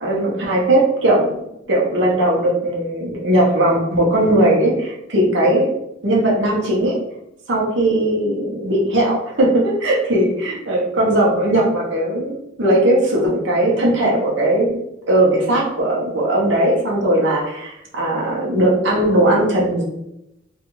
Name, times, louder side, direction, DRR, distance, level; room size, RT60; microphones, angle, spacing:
voice 1, 0.0-1.4 1.7-5.7 6.0-7.0 7.5-14.8 15.1-19.8, right 1 dB, 65° right, -3 dB, 0.8 m, -18 dB
2.4 x 2.3 x 3.0 m, 0.85 s
head